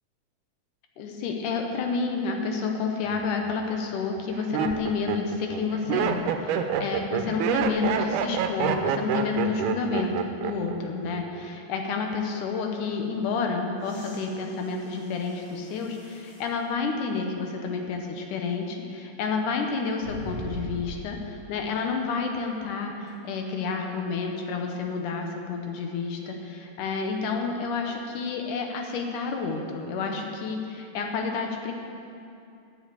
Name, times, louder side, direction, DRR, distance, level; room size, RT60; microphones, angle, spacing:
voice 1, 1.0-31.7, left 4 dB, 75° left, 3 dB, 2.4 m, -30 dB
Laughter, 3.1-3.5 4.2-10.8 11.0-11.6, right 8 dB, 80° right, 2.0 m, -27 dB
sound 1, 13.8-16.5 17.2-17.3 20.0-21.2 23.1-23.2, right 1 dB, 40° left, 3.8 m, -41 dB
9.6 x 7.2 x 8.3 m, 2.6 s
omnidirectional pair, 3.8 m